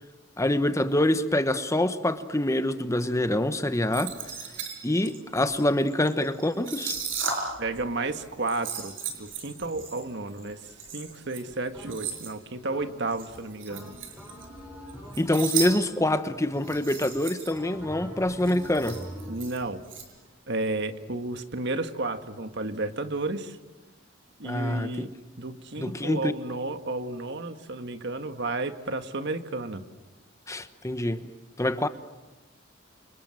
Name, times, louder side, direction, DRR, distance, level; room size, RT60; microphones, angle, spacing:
voice 1, 0.4-4.2 4.8-7.0 15.2-19.0 24.4-24.9 25.8-26.3 30.5-31.3 31.6-31.9, left 1 dB, 15° left, 1.1 m, -25 dB
sound 1, 3.9-7.8 8.1-12.3 13.1-14.6 14.9-15.7 16.0-16.1 16.5-17.6 17.9-18.0 18.2-20.1, right 6 dB, 80° right, 5.7 m, -35 dB
voice 2, 7.6-10.6 10.9-13.9 19.3-19.8 20.5-23.6 24.4-29.8, right 2 dB, 60° right, 1.6 m, -32 dB
sound 2, 11.7-12.3 12.7-13.3 13.7-16.2 16.6-17.1 17.6-19.5, equal, 5° right, 6.3 m, -43 dB
29.5 x 25.5 x 7.7 m
head